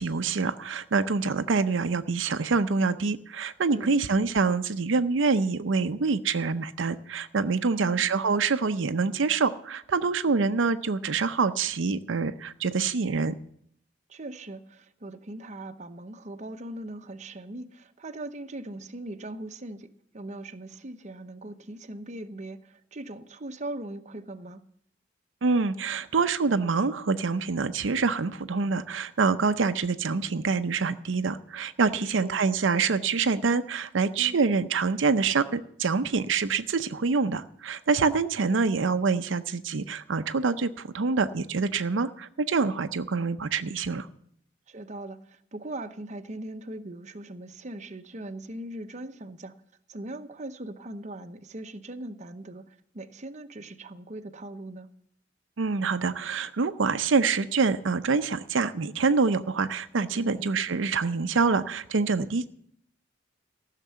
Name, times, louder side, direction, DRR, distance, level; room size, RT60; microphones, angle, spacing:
voice 1, 0.0-13.3 25.4-44.1 55.6-62.5, right 4 dB, 85° right, 0.6 m, -26 dB
voice 2, 3.7-4.0 7.6-8.1 14.1-24.6 31.9-32.4 34.2-34.4 44.7-49.6 49.9-54.9 60.1-60.5, right 1 dB, 40° right, 0.8 m, -40 dB
14.5 x 6.6 x 9.4 m
head